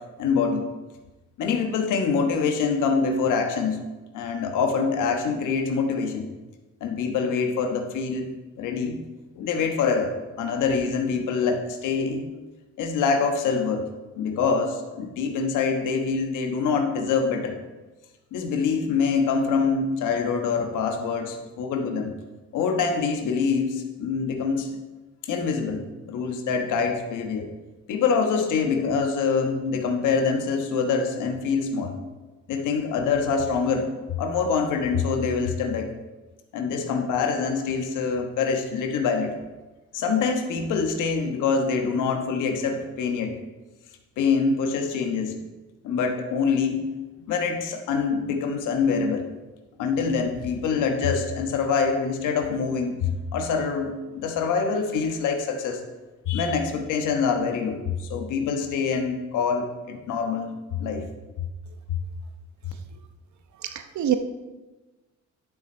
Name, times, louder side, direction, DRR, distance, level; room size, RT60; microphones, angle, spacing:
voice 1, 0.2-0.7 1.4-3.8 4.1-6.3 6.8-8.3 8.6-9.0 9.4-10.1 10.4-12.2 12.8-13.9 14.2-17.6 18.3-22.1 22.5-24.7 25.2-27.5 27.9-32.0 32.5-33.9 34.2-35.9 36.5-39.3 39.9-43.3 44.2-45.3 45.8-46.8 47.3-49.3 49.8-55.8 56.3-61.0 61.9-62.0, left 5 dB, 90° left, 4 dB, 1.3 m, -25 dB
voice 2, 63.6-64.2, right 10 dB, 70° right, 8 dB, 0.9 m, -25 dB
11.0 x 6.3 x 4.4 m, 1.2 s
cardioid pair, 90°, 30 cm